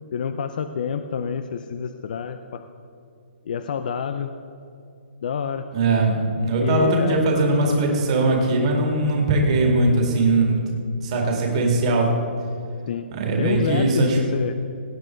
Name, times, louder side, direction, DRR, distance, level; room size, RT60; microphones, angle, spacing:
voice 1, 0.1-2.6 3.5-4.3 5.2-5.7 6.6-7.2 12.9-13.0 13.4-14.8, left 7 dB, 45° left, 9 dB, 0.5 m, -28 dB
voice 2, 5.7-10.6 11.0-12.1 13.1-14.2, right 2 dB, 30° right, 0 dB, 2.1 m, -20 dB
17.0 x 8.4 x 4.5 m, 2.6 s
hypercardioid pair, 170°, 6 cm